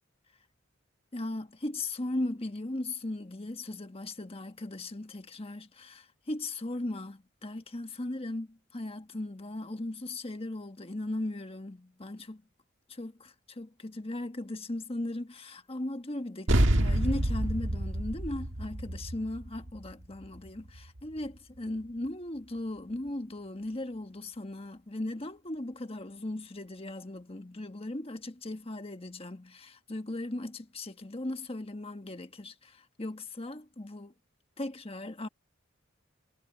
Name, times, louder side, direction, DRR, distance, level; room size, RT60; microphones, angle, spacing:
voice 1, 1.1-12.4 12.9-34.1 34.6-35.3, left 1 dB, 30° left, 1.4 m, -37 dB
sound 1, 16.5-21.3, right 1 dB, 70° right, 1.7 m, -28 dB
head